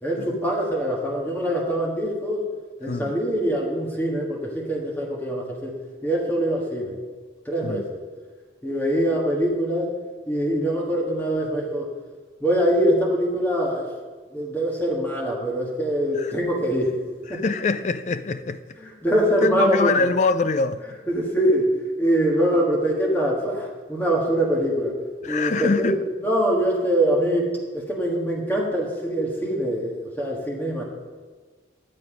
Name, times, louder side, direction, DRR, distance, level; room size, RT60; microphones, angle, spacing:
voice 1, 0.0-2.5 2.8-5.7 6.0-7.0 7.4-8.0 8.6-10.0 10.3-11.9 12.4-13.9 14.3-16.9 17.3-17.4 18.8-20.1 21.1-25.9 26.2-30.8, right 1 dB, 10° left, 1.5 m, -23 dB
voice 2, 17.3-18.6 19.4-20.8 25.2-26.0, left 3 dB, 40° left, 0.3 m, -24 dB
9.1 x 7.7 x 5.0 m
head